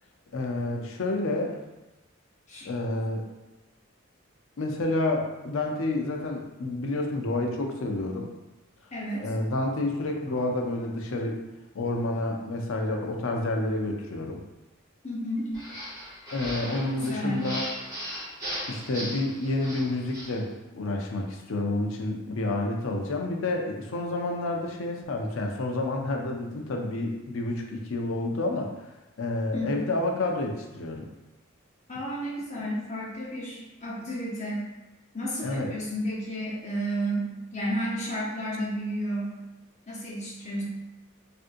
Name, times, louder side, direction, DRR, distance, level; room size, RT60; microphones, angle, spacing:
voice 1, 0.3-1.5 2.6-3.2 4.6-8.3 9.2-11.4 11.7-14.4 16.3-17.6 18.7-28.9 29.2-31.1 35.4-35.7, left 2 dB, 70° left, 2 dB, 0.5 m, -29 dB
voice 2, 8.9-9.3 15.0-15.6 16.9-17.5 29.5-29.7 31.9-34.6 35.1-39.4 39.9-40.6, equal, 35° left, -6 dB, 0.9 m, -32 dB
sound 1, 15.5-20.4, equal, 20° right, 1.0 m, -38 dB
3.6 x 2.6 x 2.5 m, 1.0 s
head